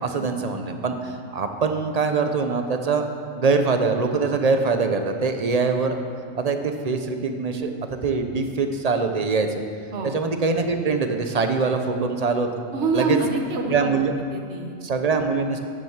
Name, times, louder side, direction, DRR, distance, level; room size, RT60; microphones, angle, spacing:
voice 1, 0.0-6.0 6.3-9.6 10.0-12.5 12.9-13.2 13.7-14.1 14.8-15.6, right 4 dB, 35° right, 6 dB, 0.8 m, -23 dB
voice 2, 12.7-14.8, right 3 dB, 60° right, 3 dB, 1.4 m, -26 dB
10.0 x 7.5 x 7.3 m, 2.3 s
omnidirectional pair, 1.3 m